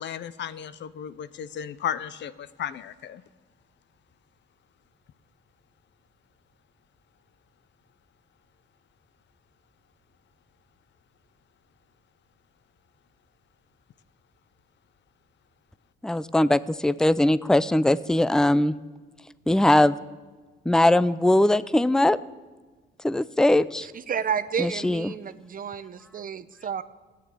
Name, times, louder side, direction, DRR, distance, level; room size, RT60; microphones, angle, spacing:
voice 1, 0.0-3.2, left 9 dB, 65° left, 15 dB, 0.7 m, -34 dB
voice 2, 16.0-18.7 19.5-20.0 20.7-22.2 23.0-23.9 24.6-25.1, left 1 dB, 5° left, 17 dB, 0.5 m, -20 dB
voice 3, 23.8-26.8, right 7 dB, 45° right, 13 dB, 0.8 m, -31 dB
15.5 x 9.4 x 8.5 m, 1.3 s
cardioid pair, 90°, 20 cm